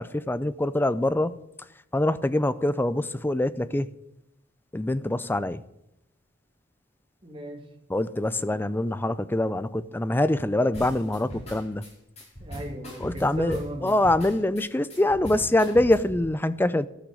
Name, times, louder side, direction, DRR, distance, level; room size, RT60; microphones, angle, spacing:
voice 1, 0.0-1.3 1.9-3.9 4.7-5.6 7.9-11.8 13.0-16.9, left 1 dB, 10° left, 0.4 m, -24 dB
voice 2, 7.2-7.7 12.4-14.1, equal, 30° right, 2.4 m, -36 dB
sound 1, 10.7-16.2, equal, 35° left, 5.4 m, -39 dB
13.5 x 6.2 x 9.4 m
head